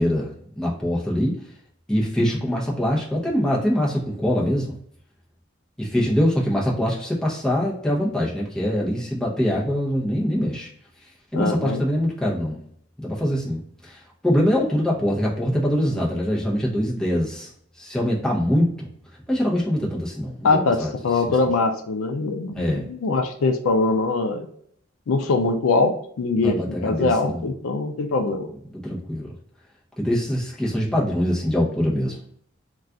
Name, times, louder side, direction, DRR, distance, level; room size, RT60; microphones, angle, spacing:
voice 1, 0.0-1.3 1.9-4.8 5.8-10.7 11.3-12.6 13.0-14.0 14.2-17.5 17.8-18.7 19.3-20.9 22.6-22.9 26.4-27.4 28.8-29.3 30.0-32.2, equal, 5° left, -5 dB, 0.6 m, -23 dB
voice 2, 11.3-11.8 20.4-24.5 25.1-28.5, left 3 dB, 90° left, 6 dB, 0.4 m, -22 dB
2.3 x 2.3 x 3.7 m, 0.66 s
head